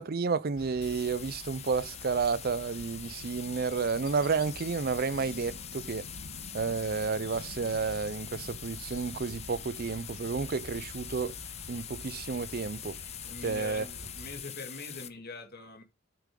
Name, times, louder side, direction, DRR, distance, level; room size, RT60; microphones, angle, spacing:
voice 1, 0.0-6.0 6.5-11.3 11.7-13.0 13.4-13.8, right 5 dB, 45° right, 0.5 m, -31 dB
sound 1, 0.6-14.4, left 1 dB, 85° left, 3.0 m, -47 dB
sound 2, 0.8-15.1, left 10 dB, 30° left, 0.9 m, -44 dB
voice 2, 13.2-15.8, left 2 dB, 45° left, 2.2 m, -43 dB
8.3 x 6.9 x 3.8 m
head